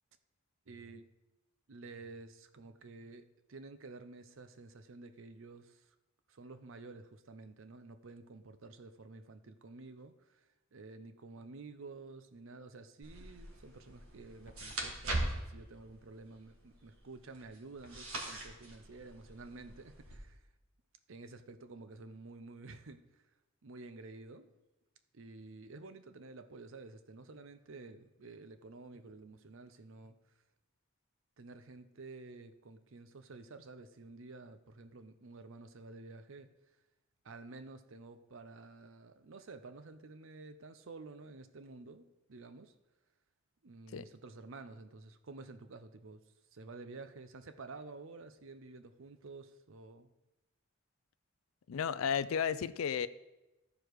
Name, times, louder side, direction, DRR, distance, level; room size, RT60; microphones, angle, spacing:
voice 1, 0.7-1.1 1.7-5.9 6.3-20.4 21.1-23.2 23.6-24.5 25.1-30.2 31.4-36.5 37.2-42.7 43.6-46.2 46.5-50.1, right 3 dB, 65° right, 0.6 m, -51 dB
sound 1, 13.0-20.2, right 1 dB, 85° right, 1.7 m, -42 dB
sound 2, 14.5-15.0, left 1 dB, 35° left, 1.1 m, -58 dB
voice 2, 51.7-53.1, left 7 dB, 80° left, 0.4 m, -33 dB
14.0 x 4.9 x 4.6 m
head